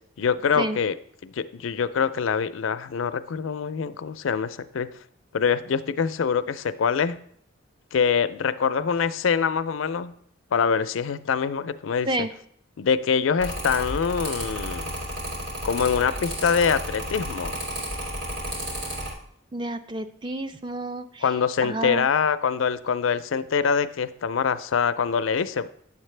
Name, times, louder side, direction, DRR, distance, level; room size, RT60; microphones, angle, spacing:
voice 1, 0.2-0.9 1.2-4.9 5.3-7.2 7.9-10.1 10.5-12.1 12.8-14.8 15.6-17.6 21.2-25.7, left 6 dB, 80° left, 13 dB, 0.4 m, -24 dB
Mechanical fan, 13.4-19.1, equal, 80° right, 2.8 m, -32 dB
voice 2, 19.5-21.3 21.6-22.1, right 1 dB, 25° right, 9 dB, 0.4 m, -30 dB
9.6 x 7.3 x 3.3 m, 0.65 s
head